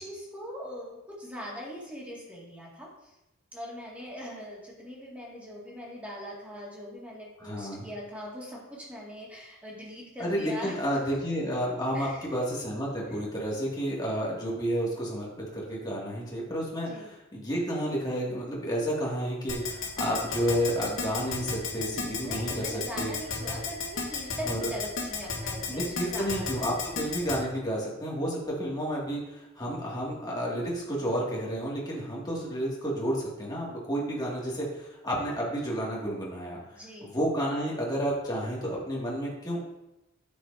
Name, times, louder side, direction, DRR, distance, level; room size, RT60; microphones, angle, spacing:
voice 1, 0.0-3.1 3.5-10.8 11.0-11.2 11.9-12.3 16.8-17.1 22.2-26.5 36.7-37.1, equal, 5° right, -5 dB, 1.9 m, -41 dB
voice 2, 7.4-7.9 10.2-23.1 24.4-24.7 25.7-39.6, equal, 20° left, -5 dB, 2.0 m, -31 dB
Keyboard (musical), 19.5-27.4, left 5 dB, 65° left, 1.9 m, -32 dB
9.4 x 7.5 x 2.6 m, 0.95 s
head